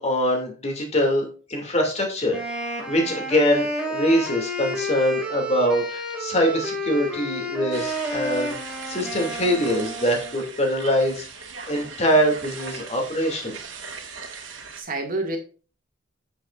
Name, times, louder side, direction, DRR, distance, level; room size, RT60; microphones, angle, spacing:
voice 1, 0.0-8.5 8.9-11.3 11.7-13.6, equal, 35° left, 2 dB, 2.6 m, -23 dB
Wind instrument woodwind instrument, 2.3-10.4, equal, 5° right, 2.4 m, -30 dB
sound 1, 7.7-14.8, right 5 dB, 65° right, 1.9 m, -39 dB
voice 2, 14.4-15.4, right 2 dB, 45° right, 2 dB, 2.1 m, -29 dB
8.5 x 7.9 x 2.5 m, 0.37 s
head